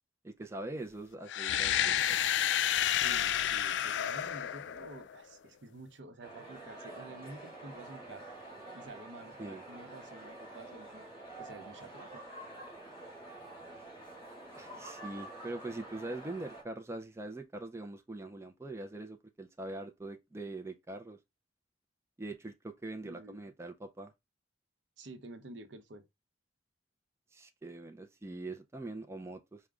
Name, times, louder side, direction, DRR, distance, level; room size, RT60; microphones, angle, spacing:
voice 1, 0.2-2.2 9.4-9.6 14.6-21.2 22.2-24.1 27.3-29.6, right 2 dB, 15° right, 0.4 m, -43 dB
sound 1, 1.3-5.2, left 10 dB, 70° left, 0.3 m, -30 dB
voice 2, 2.9-8.3 8.7-11.1 11.4-12.2 23.0-23.5 25.0-26.0, right 2 dB, 75° right, 0.7 m, -50 dB
sound 2, 6.2-16.6, right 2 dB, 30° left, 2.1 m, -48 dB
4.9 x 2.1 x 3.4 m
head